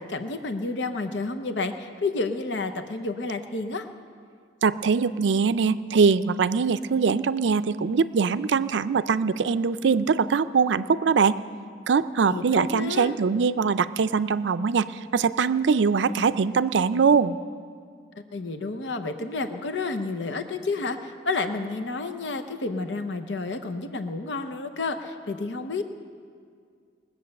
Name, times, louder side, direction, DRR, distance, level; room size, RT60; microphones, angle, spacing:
voice 1, 0.0-3.8 12.2-13.1 18.3-25.8, left 3 dB, 75° left, 7 dB, 0.8 m, -30 dB
voice 2, 4.6-11.4 11.9-17.4, right 5 dB, 80° right, 13 dB, 0.4 m, -22 dB
20.5 x 8.3 x 6.6 m, 2.1 s
head